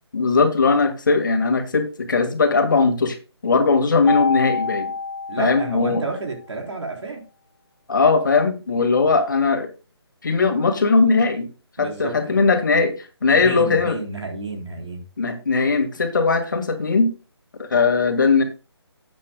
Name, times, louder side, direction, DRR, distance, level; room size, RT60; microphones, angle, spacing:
voice 1, 0.1-3.2 3.4-4.9 5.4-6.0 7.9-9.7 10.2-11.5 11.8-14.0 15.2-17.1 17.6-18.4, left 4 dB, 45° left, 6 dB, 1.9 m, -19 dB
Mallet percussion, 4.1-6.3, left 4 dB, 75° left, 0.8 m, -27 dB
voice 2, 5.3-7.2 11.8-12.5 13.4-15.0, right 3 dB, 90° right, 1 dB, 3.8 m, -30 dB
13.0 x 8.3 x 2.3 m, 0.32 s
hypercardioid pair, 175°, 14 cm